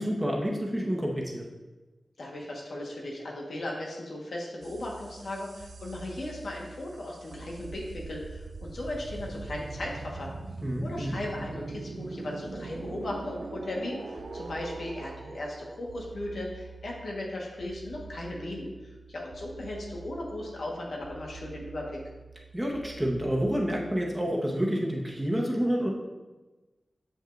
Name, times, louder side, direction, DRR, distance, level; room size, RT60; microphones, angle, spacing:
voice 1, 0.0-1.5 10.6-11.2 22.5-25.9, equal, 10° right, -2 dB, 1.3 m, -28 dB
voice 2, 2.2-10.3 10.8-22.0, left 1 dB, 80° left, -2 dB, 1.5 m, -37 dB
sound 1, 4.6-24.2, right 3 dB, 85° right, 0.5 m, -43 dB
7.5 x 6.1 x 2.6 m, 1.2 s
wide cardioid pair, 65°, 0 cm